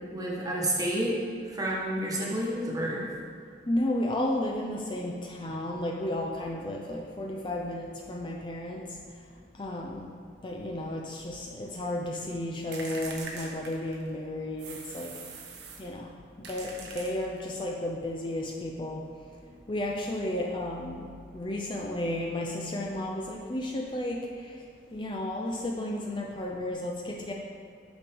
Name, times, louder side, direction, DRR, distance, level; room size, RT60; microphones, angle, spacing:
voice 1, 0.1-3.0, right 1 dB, 20° right, -3 dB, 1.2 m, -30 dB
voice 2, 3.7-8.8 9.6-10.1 10.4-15.1 15.8-16.1 16.4-19.0 19.7-21.1 21.3-24.2 24.9-27.3, left 1 dB, 25° left, -1 dB, 0.5 m, -33 dB
sound 1, 12.7-14.1 14.6-15.9 16.4-17.5, right 4 dB, 65° right, 1.0 m, -43 dB
8.8 x 6.0 x 3.5 m, 2.2 s
head